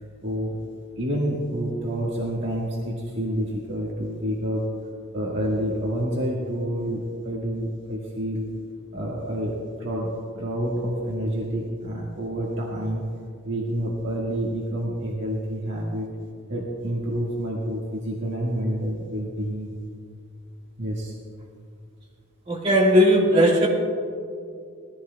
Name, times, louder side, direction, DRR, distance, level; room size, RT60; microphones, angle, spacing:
voice 1, 0.2-0.6 1.0-4.6 5.1-8.5 8.9-10.1 10.3-13.0 13.4-16.1 16.5-19.7 20.8-21.1, equal, 55° right, -4 dB, 1.7 m, -28 dB
voice 2, 22.5-23.7, equal, 25° right, -4 dB, 1.8 m, -17 dB
19.5 x 14.5 x 2.3 m, 2.3 s
head